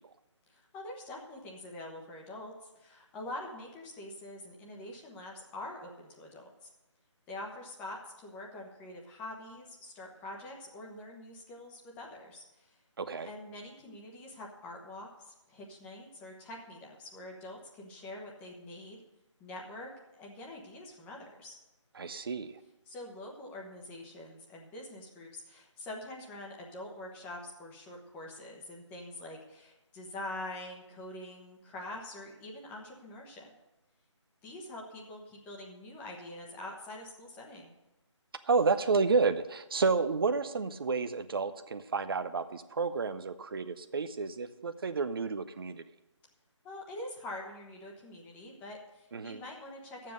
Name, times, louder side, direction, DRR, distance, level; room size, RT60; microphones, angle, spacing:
voice 1, 0.5-6.5 7.3-12.7 13.2-19.0 19.4-21.6 22.9-33.5 34.4-37.7 46.6-50.1, left 1 dB, 10° left, 0 dB, 1.2 m, -45 dB
voice 2, 13.0-13.3 22.0-22.5 38.5-45.8 49.1-49.4, right 4 dB, 50° right, 10 dB, 0.7 m, -30 dB
12.0 x 7.4 x 6.5 m, 0.97 s
figure-of-eight pair, 155°, 16 cm